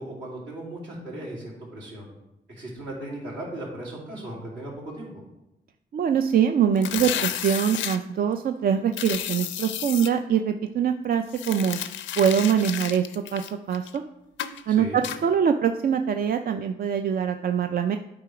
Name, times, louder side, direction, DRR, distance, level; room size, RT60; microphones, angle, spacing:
voice 1, 0.0-2.1 2.5-5.1 14.7-15.0, right 1 dB, 70° right, -4 dB, 3.0 m, -37 dB
voice 2, 5.9-11.8 12.2-14.0 14.7-18.0, right 8 dB, 50° right, 7 dB, 0.4 m, -23 dB
sound 1, 6.8-8.0 8.9-10.1 11.3-14.0 14.4-14.6 15.0-15.2, left 10 dB, 80° left, 0.5 m, -32 dB
8.8 x 3.8 x 4.8 m, 0.92 s
cardioid pair, 70°, 19 cm